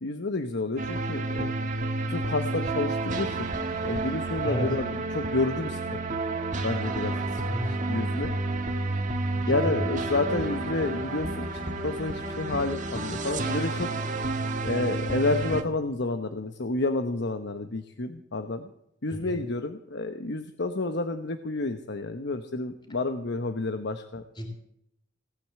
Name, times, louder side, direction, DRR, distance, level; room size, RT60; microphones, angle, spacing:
voice 1, 0.0-1.5 2.1-3.5 3.8-6.0 6.6-8.3 9.5-13.9 14.6-18.7 19.0-24.2, left 2 dB, 65° left, 8 dB, 1.0 m, -30 dB
sound 1, 0.8-15.6, right 2 dB, 40° right, 1.7 m, -30 dB
voice 2, 9.4-9.9 19.1-19.4 24.4-24.5, equal, 25° left, 2 dB, 3.3 m, -32 dB
18.5 x 9.2 x 7.5 m, 0.76 s
head